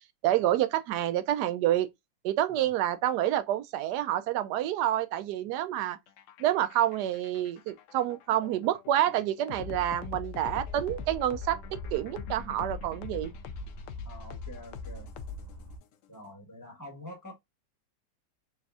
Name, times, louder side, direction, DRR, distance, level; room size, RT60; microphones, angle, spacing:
voice 1, 0.2-1.9 2.2-6.0 6.4-11.6 11.9-13.3, right 12 dB, 75° right, 1.1 m, -28 dB
sound 1, 6.1-15.8, left 6 dB, 85° left, 0.7 m, -42 dB
sound 2, 10.5-15.8, right 1 dB, 25° right, 1.1 m, -45 dB
voice 2, 14.0-15.1 16.1-17.3, left 1 dB, 10° left, 1.6 m, -47 dB
4.1 x 3.3 x 2.3 m
omnidirectional pair, 1.9 m